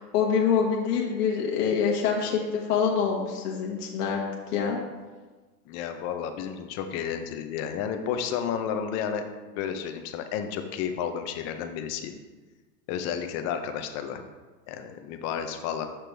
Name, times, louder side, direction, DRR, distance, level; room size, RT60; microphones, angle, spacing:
voice 1, 0.0-4.2 4.5-4.8, left 6 dB, 70° left, -1 dB, 1.3 m, -25 dB
voice 2, 5.7-9.2 9.5-12.1 12.9-14.2 14.7-15.9, left 8 dB, 30° left, 7 dB, 0.6 m, -31 dB
6.8 x 5.9 x 3.3 m, 1.3 s
supercardioid pair, 130°, 49 cm